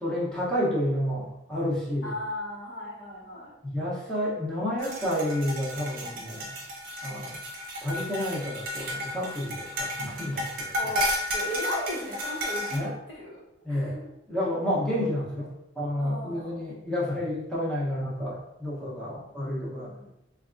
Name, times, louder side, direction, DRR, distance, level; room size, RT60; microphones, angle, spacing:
voice 1, 0.0-2.1 3.6-6.5 7.0-7.4 7.8-10.8 12.7-12.9 13.6-14.0 14.3-19.9, equal, 5° left, -8 dB, 0.7 m, -30 dB
voice 2, 2.0-3.6 7.0-7.3 10.8-13.4 13.7-14.0 15.9-16.6 19.7-20.1, equal, 70° left, -5 dB, 1.0 m, -37 dB
sound 1, 4.8-12.8, left 1 dB, 50° right, 0.8 m, -33 dB
3.9 x 2.3 x 2.5 m, 0.83 s
head